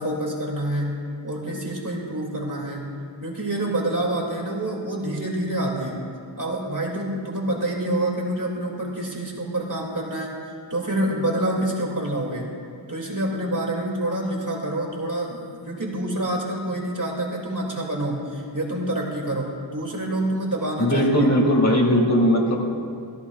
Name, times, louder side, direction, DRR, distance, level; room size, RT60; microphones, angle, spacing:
voice 1, 0.0-2.9 3.2-6.0 6.4-10.4 10.7-12.5 12.9-15.4 15.7-21.1, right 1 dB, 40° right, -1 dB, 2.5 m, -27 dB
voice 2, 20.8-22.6, equal, 35° left, 0 dB, 2.1 m, -18 dB
16.5 x 14.5 x 2.4 m, 2.3 s
cardioid pair, 45°, 47 cm